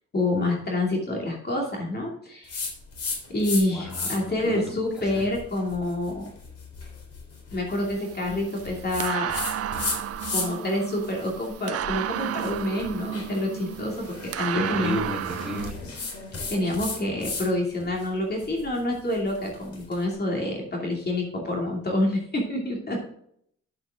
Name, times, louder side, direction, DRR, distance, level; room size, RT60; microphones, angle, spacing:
voice 1, 0.1-2.6 3.3-6.3 7.5-9.4 10.3-15.0 16.5-23.1, left 1 dB, 35° left, -1 dB, 2.6 m, -27 dB
sound 1, 2.5-3.6 3.9-4.4 4.9-10.7 11.0-17.5 17.8-20.0, left 3 dB, 55° left, 3.5 m, -35 dB
voice 2, 3.7-4.6 5.1-5.2 14.5-15.8, equal, ahead, -3 dB, 3.4 m, -32 dB
sound 2, 7.7-15.7, right 11 dB, 55° right, 0.5 m, -33 dB
10.5 x 7.3 x 3.7 m, 0.67 s
cardioid pair, 110°, 29 cm